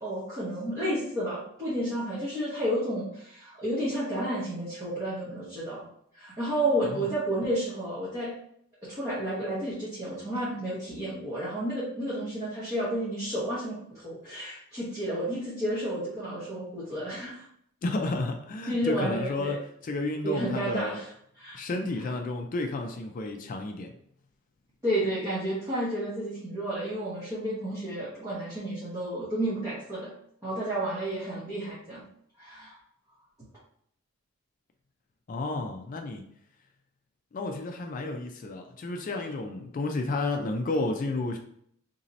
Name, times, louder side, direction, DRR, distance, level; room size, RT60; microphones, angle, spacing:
voice 1, 0.0-5.8 6.1-8.3 8.8-17.4 18.6-19.6 20.2-21.1 21.4-21.6 24.8-30.1 30.4-32.1 32.4-32.8, right 1 dB, 15° right, -10 dB, 1.0 m, -31 dB
voice 2, 17.8-21.0 21.5-23.9 35.3-36.2 37.3-41.4, left 2 dB, 40° left, 4 dB, 0.3 m, -31 dB
2.9 x 2.7 x 3.9 m, 0.68 s
head